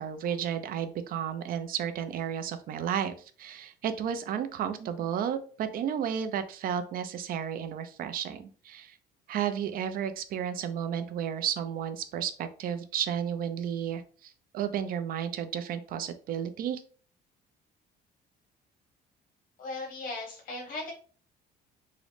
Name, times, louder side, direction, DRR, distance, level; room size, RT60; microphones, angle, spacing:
voice 1, 0.0-9.0 9.3-16.8, right 9 dB, 60° right, 9 dB, 0.5 m, -32 dB
voice 2, 19.6-20.9, left 2 dB, 75° left, -2 dB, 1.2 m, -37 dB
3.7 x 2.1 x 3.2 m, 0.42 s
cardioid pair, 110°, 17 cm